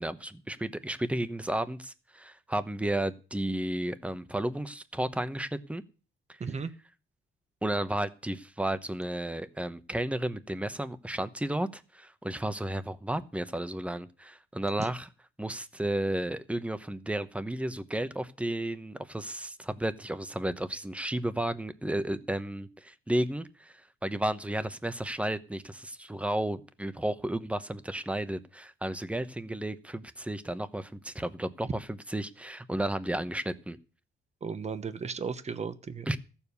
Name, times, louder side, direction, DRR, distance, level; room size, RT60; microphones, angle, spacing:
voice 1, 0.0-5.8 7.6-15.1 15.4-23.7 24.0-31.7 32.1-33.8 36.1-36.2, right 1 dB, 5° right, 13 dB, 1.0 m, -33 dB
voice 2, 6.4-6.7 14.8-14.9 31.6-31.7 34.4-36.1, right 5 dB, 30° right, 12 dB, 1.1 m, -35 dB
14.5 x 7.2 x 6.9 m, 0.35 s
cardioid pair, 115°, 21 cm